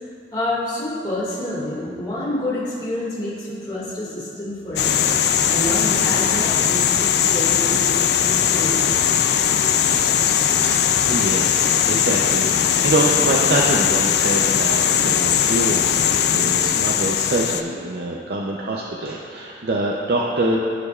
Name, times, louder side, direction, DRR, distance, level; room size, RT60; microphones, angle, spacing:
voice 1, 0.3-5.1 5.5-8.0 8.2-9.1, left 1 dB, 25° left, -8 dB, 1.9 m, -28 dB
sound 1, 4.8-17.6, left 9 dB, 65° left, 0.4 m, -19 dB
voice 2, 10.6-16.0 16.3-20.6, right 2 dB, 60° right, -3 dB, 0.6 m, -25 dB
14.5 x 5.1 x 2.4 m, 2.3 s
head